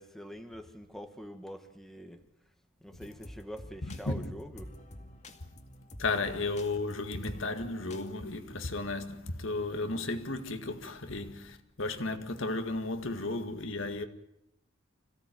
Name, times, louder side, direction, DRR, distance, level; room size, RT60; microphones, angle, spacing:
voice 1, 0.0-2.2 2.8-4.7, equal, ahead, 1.7 m, -45 dB
sound 1, 3.0-8.1, left 1 dB, 35° left, 2.3 m, -49 dB
voice 2, 3.8-4.3 6.0-14.0, left 2 dB, 65° left, 1.9 m, -34 dB
26.5 x 16.5 x 9.2 m
head